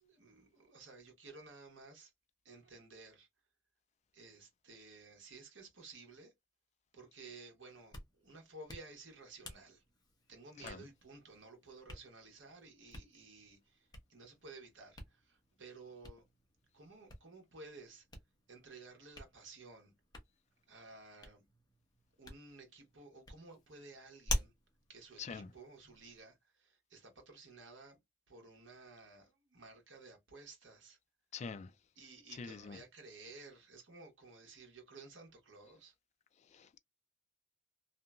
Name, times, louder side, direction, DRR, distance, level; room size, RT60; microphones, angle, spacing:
voice 1, 0.2-2.1 2.4-3.3 4.1-6.3 6.9-9.8 10.3-16.3 16.7-18.0 18.5-19.9 20.7-21.5 22.2-24.5 24.9-28.0 28.3-31.0 32.0-35.9, right 3 dB, 80° right, 1.1 m, -55 dB
Hands, 7.7-26.2, left 1 dB, 20° left, 0.8 m, -48 dB
voice 2, 25.2-25.5 31.3-31.7 32.3-32.8 36.5-36.8, left 5 dB, 40° left, 0.3 m, -45 dB
2.7 x 2.6 x 2.2 m
head